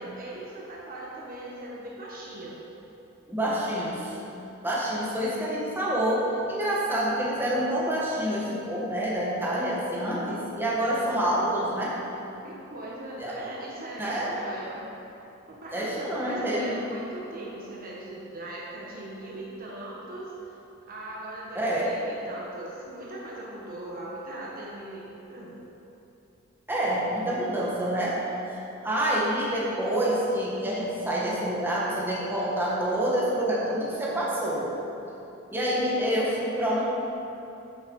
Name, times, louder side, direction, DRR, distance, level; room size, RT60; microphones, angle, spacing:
voice 1, 0.0-2.6 12.4-14.8 15.5-20.5 20.9-25.6, right 1 dB, 45° right, -4 dB, 1.2 m, -40 dB
voice 2, 3.3-4.1 4.6-12.0 13.2-13.4 14.0-14.3 15.7-16.8 21.6-21.9 26.7-28.2 28.5-34.7 35.5-36.8, right 1 dB, 10° right, -6 dB, 1.7 m, -27 dB
9.4 x 7.6 x 4.8 m, 3.0 s
head